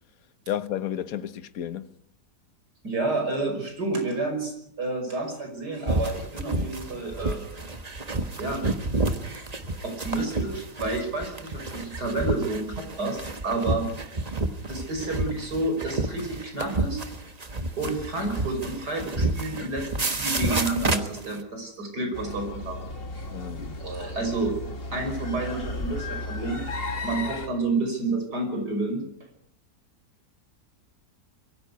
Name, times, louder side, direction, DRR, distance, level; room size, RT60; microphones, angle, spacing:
voice 1, 0.5-1.9 23.3-23.8, left 10 dB, 60° left, 1.4 m, -32 dB
voice 2, 2.8-7.4 8.4-8.6 9.8-13.9 14.7-17.0 17.8-22.8 23.1-23.2 23.8-24.5 24.9-26.6 27.0-29.0, right 2 dB, 75° right, 6.1 m, -30 dB
sound 1, 5.9-21.4, right 2 dB, 25° right, 1.2 m, -29 dB
sound 2, 22.1-27.5, left 2 dB, 35° left, 2.1 m, -34 dB
22.5 x 15.0 x 9.4 m
omnidirectional pair, 1.8 m